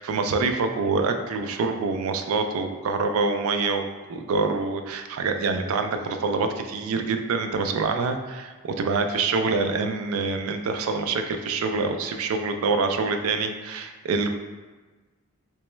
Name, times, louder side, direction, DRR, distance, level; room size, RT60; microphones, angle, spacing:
voice 1, 0.0-14.3, right 4 dB, 80° right, 6 dB, 0.3 m, -26 dB
3.3 x 3.0 x 3.1 m, 1.3 s
head